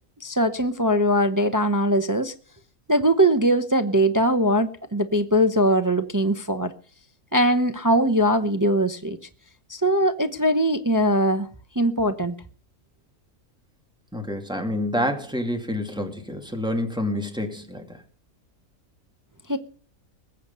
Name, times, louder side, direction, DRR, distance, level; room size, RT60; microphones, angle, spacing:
voice 1, 0.2-2.3 2.9-6.7 7.3-9.2 9.7-11.5 11.8-12.3 19.5-19.6, equal, 20° right, 0.6 m, -21 dB
voice 2, 14.1-18.0, left 1 dB, 5° right, 2.3 m, -28 dB
20.5 x 8.3 x 5.6 m
omnidirectional pair, 1.5 m